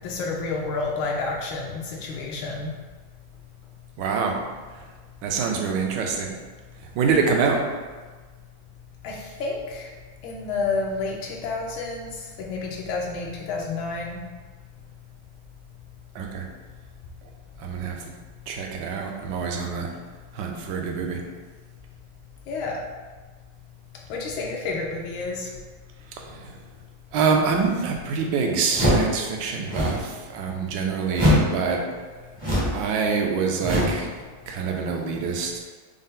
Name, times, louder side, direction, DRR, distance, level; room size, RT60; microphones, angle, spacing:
voice 1, 0.0-2.7 9.0-9.9 10.2-14.2 22.5-22.8 24.1-25.5, left 3 dB, 85° left, -1 dB, 1.5 m, -30 dB
voice 2, 4.0-4.3 5.2-6.3 6.8-7.7 16.1-16.4 17.6-18.1 18.5-19.9 20.3-21.2 26.2-26.6 27.1-31.9 32.7-34.1 34.5-35.6, right 5 dB, 70° right, 2 dB, 1.1 m, -25 dB
sound 1, 28.7-29.2 29.6-30.1 31.1-31.5 32.4-32.8 33.6-34.0, left 1 dB, 25° right, 0.5 m, -21 dB
5.4 x 2.1 x 3.6 m, 1.4 s
omnidirectional pair, 2.2 m